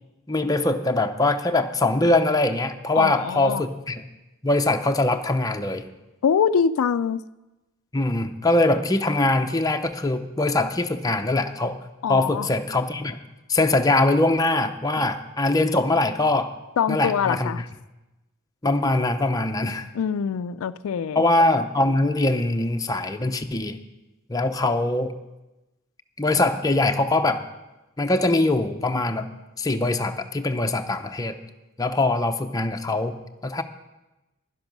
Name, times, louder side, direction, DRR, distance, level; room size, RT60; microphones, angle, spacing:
voice 1, 0.3-4.0 4.4-5.8 7.9-11.8 12.1-13.2 13.5-16.5 16.9-17.5 18.6-19.9 21.1-23.8 24.3-25.2 26.2-27.4 28.0-31.4 31.8-33.6, left 2 dB, 15° left, 5 dB, 0.7 m, -22 dB
voice 2, 2.9-3.6 6.2-7.2 12.0-12.5 15.0-15.1 16.8-17.6 19.9-21.2, left 7 dB, 90° left, 14 dB, 0.4 m, -24 dB
11.0 x 10.5 x 6.1 m, 1.0 s
head